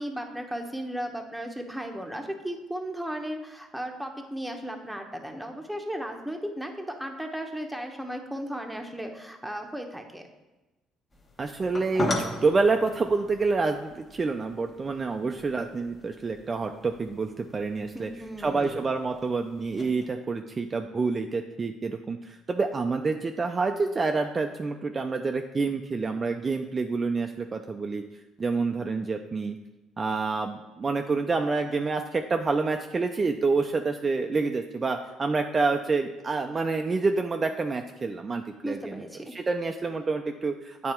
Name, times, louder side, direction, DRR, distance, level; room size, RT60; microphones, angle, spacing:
voice 1, 0.0-10.2 17.9-18.8 38.6-39.3, equal, ahead, 3 dB, 0.9 m, -35 dB
sound 1, 11.1-20.1, left 2 dB, 30° left, 1.1 m, -38 dB
voice 2, 11.4-18.1 18.4-28.0 28.4-29.6 30.0-39.0 39.3-40.9, right 4 dB, 30° right, 5 dB, 0.4 m, -28 dB
8.4 x 3.3 x 4.4 m, 1.1 s
supercardioid pair, 85°, 0 cm